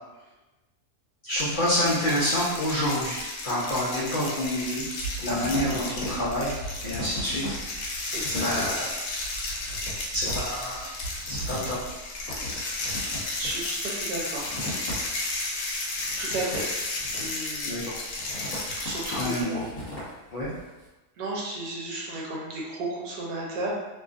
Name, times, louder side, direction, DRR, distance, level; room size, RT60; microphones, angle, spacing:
voice 1, 1.2-4.9 5.2-6.6 6.8-7.9 8.3-9.2 10.1-10.9 11.3-11.8 17.6-17.9 19.1-19.6 20.3-20.5, left 1 dB, 90° left, -8 dB, 0.4 m, -28 dB
sound 1, 1.3-19.4, left 2 dB, 70° left, 1.0 m, -33 dB
sound 2, 4.3-4.4 4.6-15.4 15.7-17.5 18.0-20.7, equal, 45° left, 1.4 m, -38 dB
voice 2, 8.1-8.8 13.4-14.5 16.2-16.6 17.2-17.8 18.7-19.6 21.2-23.7, right 2 dB, 75° right, -4 dB, 1.2 m, -33 dB
2.9 x 2.4 x 2.4 m, 1.1 s
omnidirectional pair, 1.7 m